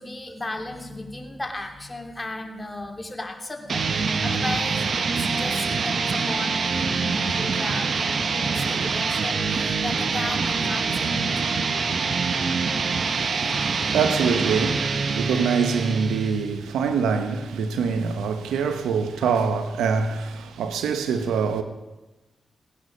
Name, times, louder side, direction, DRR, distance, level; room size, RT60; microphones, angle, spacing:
voice 1, 0.0-5.1 5.3-11.4, left 2 dB, 25° left, 2.8 m, -35 dB
sound 1, 3.7-16.5, right 5 dB, 65° right, 1.0 m, -25 dB
voice 2, 13.0-21.6, right 5 dB, 90° right, 1.0 m, -25 dB
18.0 x 10.0 x 5.4 m
supercardioid pair, 40°, 0 cm